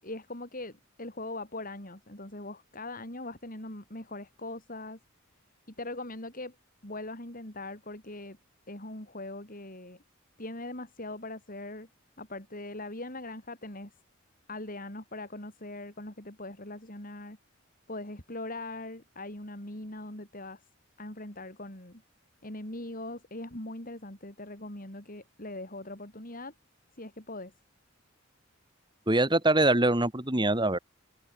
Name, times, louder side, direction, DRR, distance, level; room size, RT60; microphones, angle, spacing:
voice 1, 0.0-5.0 5.7-6.6 6.8-8.4 8.7-10.0 10.4-11.9 12.2-13.9 14.5-17.4 17.9-20.7 21.0-22.0 22.4-26.5 27.0-27.5, left 2 dB, 40° left, 5.9 m, -41 dB
voice 2, 29.1-30.8, right 2 dB, 20° right, 3.4 m, -24 dB
head